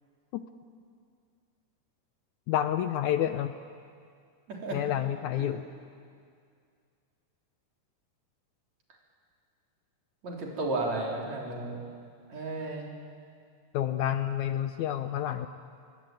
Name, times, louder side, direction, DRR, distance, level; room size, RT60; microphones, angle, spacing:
voice 1, 2.5-3.6 4.7-5.6 13.7-15.5, left 11 dB, 75° left, 10 dB, 1.9 m, -29 dB
voice 2, 10.2-11.8 12.3-12.9, right 2 dB, 55° right, -1 dB, 4.9 m, -33 dB
26.5 x 22.0 x 9.1 m, 2.2 s
omnidirectional pair, 3.8 m